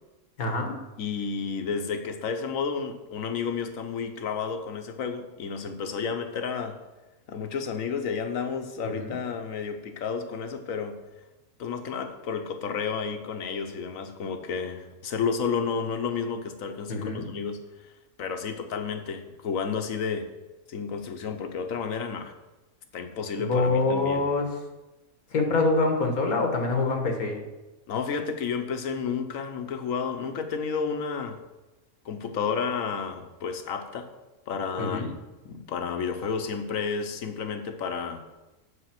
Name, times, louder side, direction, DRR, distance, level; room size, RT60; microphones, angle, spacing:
voice 1, 0.4-0.8 8.8-9.2 16.9-17.3 23.4-24.5 25.3-27.4 34.8-35.1, left 3 dB, 90° left, 4 dB, 1.9 m, -25 dB
voice 2, 1.0-6.8 7.3-11.0 11.6-17.6 18.2-20.3 20.7-22.3 22.9-24.3 27.9-31.4 32.0-34.1 34.5-35.1 35.4-38.2, left 6 dB, 70° left, 7 dB, 1.3 m, -31 dB
8.1 x 6.9 x 5.9 m, 1.1 s
omnidirectional pair, 1.5 m